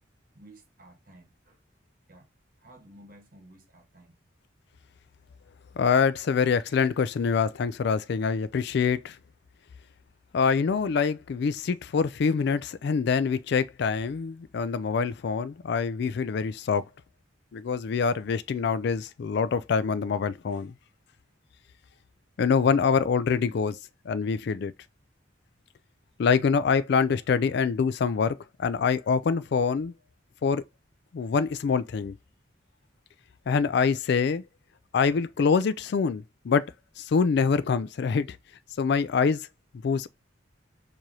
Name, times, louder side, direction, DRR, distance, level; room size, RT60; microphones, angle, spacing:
voice 1, 0.3-1.6 2.1-2.3 2.6-4.2, right 1 dB, 45° right, 1.3 m, -53 dB
voice 2, 5.8-9.2 10.3-16.8 17.5-20.7 22.4-23.8 24.1-24.7 26.2-29.9 30.4-30.6 31.1-32.2 33.5-34.4 34.9-36.7 37.0-38.4 38.8-39.5 39.8-40.1, left 5 dB, 60° left, 0.3 m, -25 dB
4.6 x 2.7 x 2.9 m
head